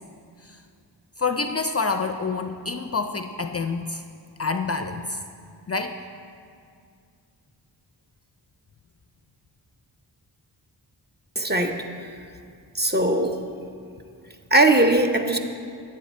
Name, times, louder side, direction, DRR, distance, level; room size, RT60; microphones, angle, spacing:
voice 1, 1.2-4.0 4.4-5.2 5.7-6.0, left 4 dB, 35° left, 7 dB, 0.4 m, -27 dB
voice 2, 11.4-11.8 12.7-13.4 14.5-15.4, right 1 dB, 25° right, 4 dB, 0.8 m, -19 dB
10.0 x 8.3 x 4.3 m, 2.3 s
cardioid pair, 45°, 44 cm